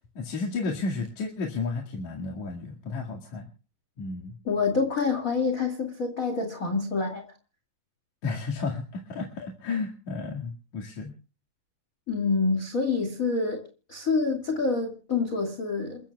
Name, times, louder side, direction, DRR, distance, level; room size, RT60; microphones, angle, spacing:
voice 1, 0.2-3.5 4.0-4.3 8.2-11.1, left 4 dB, 55° left, 3.3 m, -32 dB
voice 2, 4.4-7.3 12.1-13.6 13.9-16.1, left 4 dB, 30° left, 2.1 m, -27 dB
29.0 x 15.0 x 2.3 m
omnidirectional pair, 4.1 m